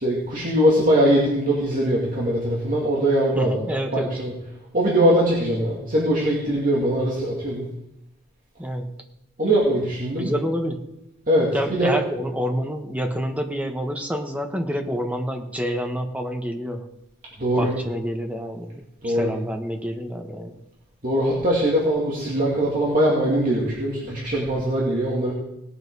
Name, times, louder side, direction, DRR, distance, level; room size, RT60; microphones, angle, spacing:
voice 1, 0.0-3.6 3.9-4.3 4.7-7.7 9.4-10.3 11.3-12.0 17.4-17.7 19.0-19.3 21.0-25.3, right 1 dB, 40° right, -5 dB, 2.4 m, -21 dB
voice 2, 3.3-4.1 8.6-8.9 10.2-10.8 11.5-16.8 17.6-20.5, equal, 5° right, 4 dB, 1.1 m, -28 dB
18.0 x 8.1 x 4.7 m, 0.87 s
head